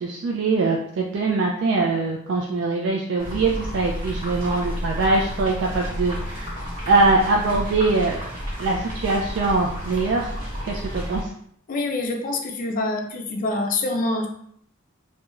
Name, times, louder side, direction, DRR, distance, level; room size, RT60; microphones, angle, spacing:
voice 1, 0.0-6.5 6.9-8.3 8.6-10.3 10.6-11.2, right 3 dB, 60° right, -1 dB, 0.3 m, -22 dB
sound 1, 3.2-11.2, equal, 40° right, 1.1 m, -31 dB
voice 2, 11.7-14.3, left 2 dB, 40° left, 4 dB, 0.4 m, -25 dB
2.4 x 2.1 x 2.9 m, 0.66 s
head